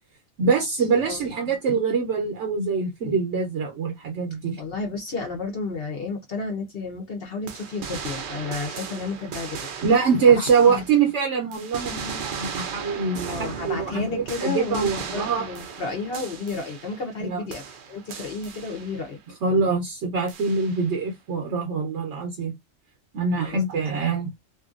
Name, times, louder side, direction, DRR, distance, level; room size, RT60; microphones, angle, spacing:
voice 1, 0.4-4.6 9.8-15.5 17.2-17.4 19.4-22.5 23.1-24.3, right 5 dB, 75° right, 1.0 m, -23 dB
voice 2, 4.6-9.6 10.3-10.8 13.3-19.2 23.4-23.9, left 3 dB, 55° left, 1.0 m, -32 dB
sound 1, 7.5-11.2 11.5-17.2 17.5-19.2 20.3-21.0, right 6 dB, 55° right, 0.6 m, -37 dB
2.7 x 2.6 x 2.5 m
omnidirectional pair, 1.2 m